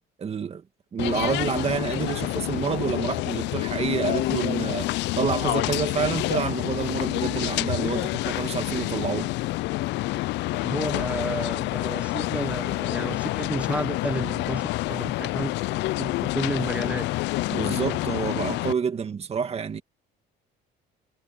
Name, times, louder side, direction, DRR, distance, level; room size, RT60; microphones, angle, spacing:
voice 1, 0.2-0.6 0.9-4.9 5.2-9.3 17.5-19.8, right 6 dB, 30° right, 1.9 m, -28 dB
sound 1, 1.0-18.7, left 19 dB, 65° left, 0.4 m, -28 dB
voice 2, 10.6-15.5 16.0-17.1, right 2 dB, 5° right, 1.1 m, -31 dB
cardioid pair, 125°, 19 cm